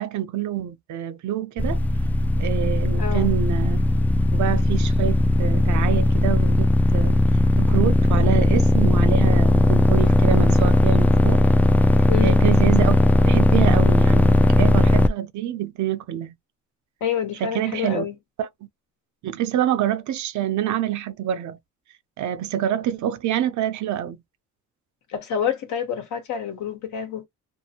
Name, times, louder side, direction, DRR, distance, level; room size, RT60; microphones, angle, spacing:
voice 1, 0.0-1.8 2.4-3.8 4.3-7.2 7.6-11.4 12.2-16.3 17.4-18.1 18.4-18.5 19.2-21.6 22.2-24.2, right 10 dB, 70° right, 0.6 m, -26 dB
sound 1, 1.6-15.1, left 1 dB, 5° left, 0.3 m, -18 dB
voice 2, 3.0-3.3 12.1-12.4 17.0-18.1 25.1-27.3, left 8 dB, 75° left, 1.1 m, -27 dB
2.7 x 2.5 x 2.8 m
cardioid pair, 90°, 30 cm